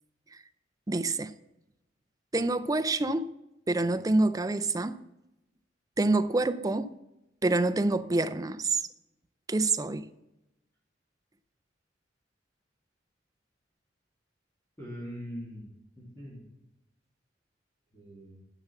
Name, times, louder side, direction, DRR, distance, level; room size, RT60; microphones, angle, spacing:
voice 1, 0.9-1.3 2.3-3.3 3.7-5.0 6.0-6.9 7.4-8.9 9.5-10.1, right 2 dB, 20° right, 0.4 m, -27 dB
voice 2, 14.8-16.4 17.9-18.4, equal, 15° left, 2.6 m, -42 dB
9.8 x 6.0 x 6.9 m
head